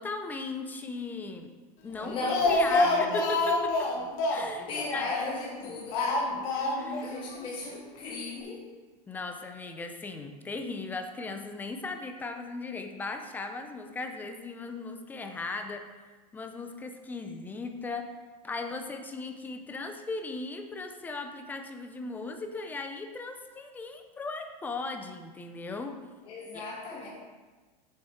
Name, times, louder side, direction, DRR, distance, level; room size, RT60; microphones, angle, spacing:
voice 1, 0.0-1.5 1.8-2.2 2.5-3.9 4.3-5.1 6.7-7.1 9.1-15.8 16.3-18.1 18.4-26.0 26.5-26.6, left 3 dB, 10° left, 6 dB, 0.5 m, -37 dB
Speech, 2.0-5.5 5.9-7.1 7.3-7.4 7.7-7.8, left 2 dB, 40° left, 1.2 m, -27 dB
voice 2, 2.0-3.3 4.7-6.1 7.0-8.6 26.2-27.1, left 2 dB, 25° left, -5 dB, 1.5 m, -35 dB
7.0 x 6.6 x 4.3 m, 1.3 s
supercardioid pair, 155°, 21 cm